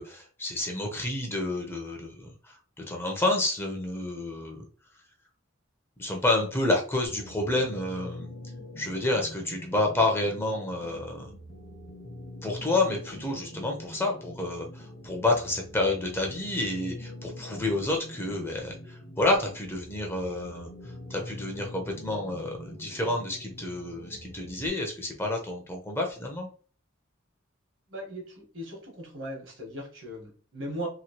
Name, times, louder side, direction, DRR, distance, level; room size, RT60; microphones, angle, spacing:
voice 1, 0.0-4.6 6.0-8.3 8.8-11.3 12.4-26.5, left 2 dB, 10° left, 1 dB, 0.6 m, -29 dB
sound 1, 7.1-24.7, left 1 dB, 45° left, 0.8 m, -44 dB
voice 2, 27.9-30.9, equal, 70° right, 0 dB, 1.2 m, -38 dB
3.0 x 2.7 x 2.8 m, 0.41 s
head